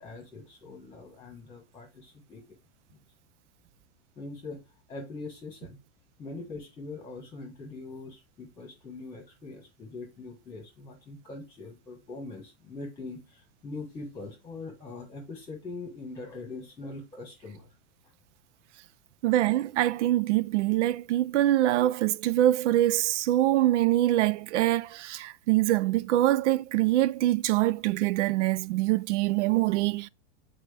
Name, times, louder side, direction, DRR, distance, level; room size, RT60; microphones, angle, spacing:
voice 1, 0.0-2.4 4.2-4.6 4.9-5.8 6.2-17.7, left 3 dB, 10° left, 1.2 m, -42 dB
voice 2, 19.2-30.1, right 14 dB, 80° right, 0.5 m, -24 dB
7.4 x 4.4 x 3.3 m
supercardioid pair, 170°, 35 cm